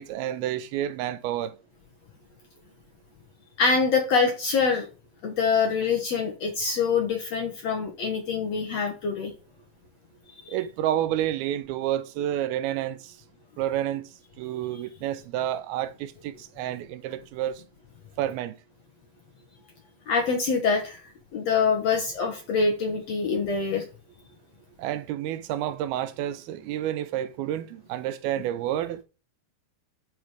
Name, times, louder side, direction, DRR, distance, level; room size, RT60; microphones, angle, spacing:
voice 1, 0.0-1.5 10.5-13.2 13.6-14.1 14.4-17.6 18.2-18.5 24.8-29.0, right 12 dB, 80° right, 2.4 m, -29 dB
voice 2, 3.6-4.9 5.2-9.3 10.4-10.6 20.1-21.0 21.3-23.8, left 5 dB, 60° left, 1.8 m, -25 dB
11.0 x 5.0 x 4.9 m
omnidirectional pair, 4.4 m